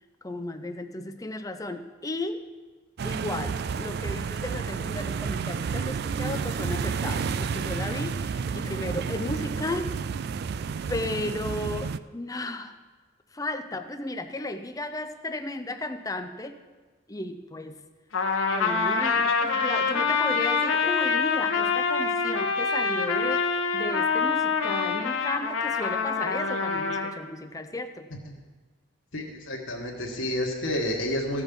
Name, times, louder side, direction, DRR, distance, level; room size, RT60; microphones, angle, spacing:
voice 1, 0.2-2.5 3.0-9.9 10.9-12.8 13.3-16.6 17.1-17.8 18.5-28.1, left 2 dB, 15° left, 8 dB, 0.6 m, -34 dB
sound 1, 3.0-12.0, right 5 dB, 50° right, 0.3 m, -31 dB
Trumpet, 18.1-27.1, left 5 dB, 75° left, 1.1 m, -25 dB
voice 2, 29.1-31.4, left 1 dB, 60° left, -3 dB, 1.4 m, -30 dB
15.5 x 6.2 x 5.2 m, 1.3 s
head